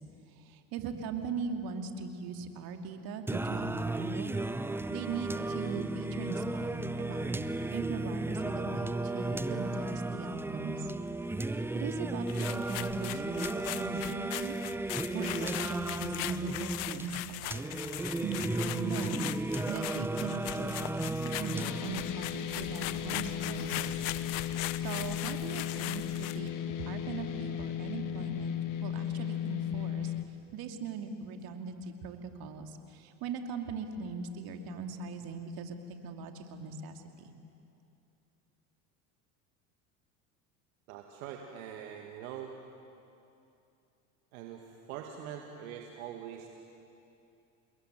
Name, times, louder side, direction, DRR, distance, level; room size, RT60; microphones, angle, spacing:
voice 1, 0.4-4.4 4.9-7.4 7.7-10.9 11.5-17.7 18.2-23.9 24.4-26.5 26.8-30.2 30.5-35.8 36.0-37.3, right 4 dB, 55° right, 5 dB, 2.8 m, -40 dB
Singing, 3.3-22.3, right 2 dB, 5° right, 0.6 m, -35 dB
sound 1, 12.3-26.5, left 18 dB, 65° left, 1.0 m, -40 dB
sound 2, 21.5-30.2, left 10 dB, 45° left, 2.0 m, -36 dB
voice 2, 40.9-42.5 44.3-46.5, right 9 dB, 75° right, 2 dB, 2.2 m, -43 dB
29.0 x 20.5 x 9.3 m, 2.7 s
hypercardioid pair, 90°, 43 cm